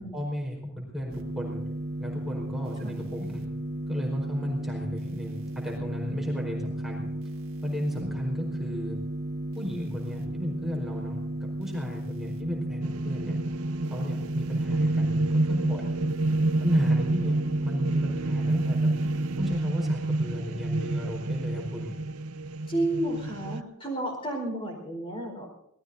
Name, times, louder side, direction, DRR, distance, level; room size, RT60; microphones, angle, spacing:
voice 1, 0.1-1.6 2.0-3.4 3.9-7.1 7.6-9.0 9.5-13.4 13.9-15.8 16.6-18.8 19.4-21.9, equal, ahead, -2 dB, 4.5 m, -34 dB
sound 1, 1.1-19.5, right 1 dB, 65° right, 2.0 m, -35 dB
sound 2, 12.8-23.6, right 2 dB, 85° right, 0.8 m, -28 dB
voice 2, 22.7-25.5, right 1 dB, 25° left, 2 dB, 4.6 m, -31 dB
26.5 x 19.5 x 2.7 m, 0.78 s
head